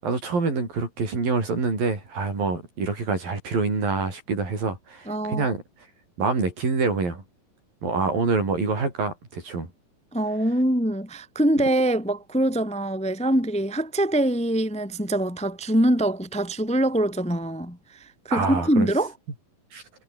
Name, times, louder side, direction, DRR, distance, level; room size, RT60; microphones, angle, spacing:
voice 1, 0.0-5.6 6.2-7.2 7.8-9.7 18.3-18.9 19.7-19.8, right 4 dB, 80° right, 9.4 m, -26 dB
voice 2, 5.1-5.5 10.1-19.1, right 1 dB, ahead, 1.8 m, -24 dB
omnidirectional pair, 4.0 m